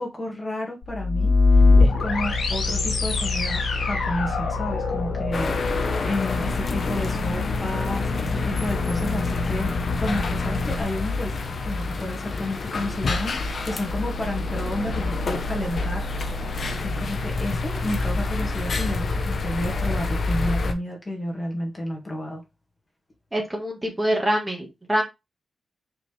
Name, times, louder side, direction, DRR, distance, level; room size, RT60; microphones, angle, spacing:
voice 1, 0.0-1.3 1.8-9.7 10.0-16.1 16.8-22.4, left 1 dB, 20° left, 2.1 m, -31 dB
sound 1, 0.8-10.8, left 3 dB, 70° left, 1.5 m, -23 dB
sound 2, 5.3-20.7, left 3 dB, 45° left, 0.9 m, -28 dB
voice 2, 23.3-25.0, equal, 15° right, 1.9 m, -25 dB
5.9 x 5.0 x 3.5 m
wide cardioid pair, 150°, 0 cm